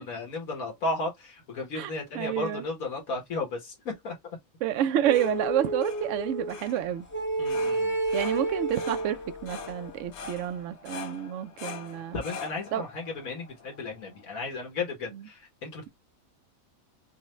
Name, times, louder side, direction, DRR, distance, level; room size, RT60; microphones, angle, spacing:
voice 1, 0.0-4.2 7.4-8.0 12.1-15.9, left 3 dB, 80° left, 1.6 m, -34 dB
voice 2, 1.7-2.6 4.6-7.1 8.1-12.2 12.7-12.8 15.1-15.2, right 11 dB, 70° right, 0.9 m, -29 dB
sound 1, 4.8-14.5, left 5 dB, 60° left, 0.9 m, -44 dB
sound 2, 5.0-6.6 7.1-9.9, right 2 dB, 10° left, 0.5 m, -31 dB
5.5 x 2.2 x 3.1 m
omnidirectional pair, 1.4 m